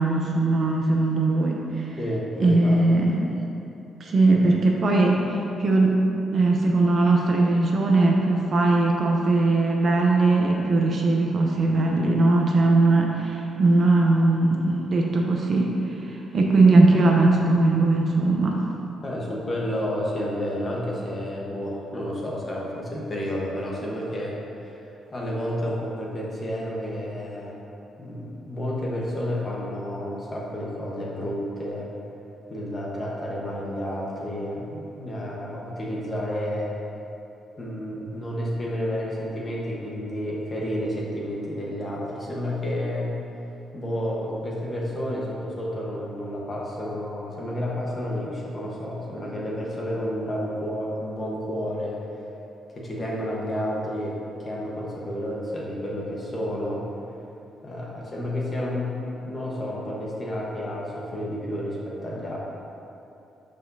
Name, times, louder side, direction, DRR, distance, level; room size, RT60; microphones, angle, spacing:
voice 1, 0.0-1.9 2.4-3.4 4.0-15.7 16.1-18.6, right 2 dB, 35° right, -1 dB, 0.6 m, -20 dB
voice 2, 2.0-2.8 4.3-4.5 19.0-24.7 25.1-27.6 28.0-31.9 32.5-36.7 37.6-43.1 43.7-52.0 52.7-56.9 57.6-62.4, equal, 20° left, -4 dB, 1.1 m, -30 dB
12.0 x 5.0 x 2.7 m, 2.9 s
cardioid pair, 170°, 0 cm